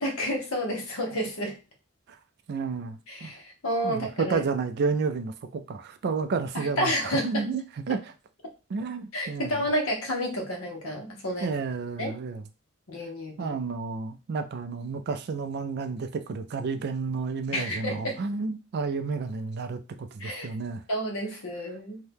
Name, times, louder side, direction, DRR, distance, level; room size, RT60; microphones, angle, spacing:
voice 1, 0.0-1.6 3.1-4.4 6.5-7.4 9.1-11.5 12.0-12.1 12.9-13.6 17.5-18.2 20.2-20.5 20.9-22.0, equal, 70° left, 0.9 m, -30 dB
voice 2, 2.5-3.3 3.8-7.6 7.9-8.1 8.7-9.5 11.4-12.4 13.4-20.8, right 4 dB, 50° right, 0.4 m, -31 dB
2.7 x 2.2 x 3.3 m
head